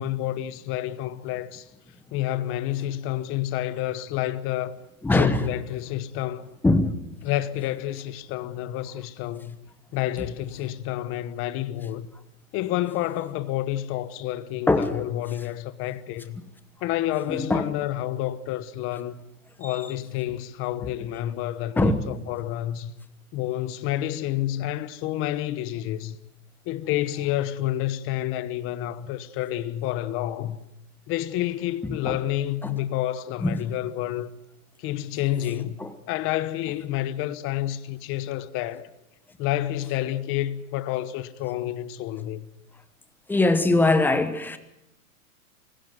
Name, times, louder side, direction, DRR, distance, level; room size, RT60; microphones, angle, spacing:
voice 1, 0.0-1.7 2.1-4.8 5.2-6.5 7.2-9.6 9.9-12.1 12.5-16.4 16.8-19.2 19.6-22.9 23.3-26.2 26.7-30.6 31.1-34.3 34.8-35.8 36.1-38.9 39.4-42.5, left 13 dB, 30° left, 1.1 m, -29 dB
voice 2, 5.0-5.5 6.6-6.9 14.7-15.0 17.3-17.7 19.6-19.8 21.8-22.0 32.1-32.2 32.6-32.7 33.4-33.6 35.8-35.9 43.3-44.6, left 2 dB, 5° left, 1.1 m, -21 dB
24.0 x 16.5 x 7.8 m
hypercardioid pair, 145°, 44 cm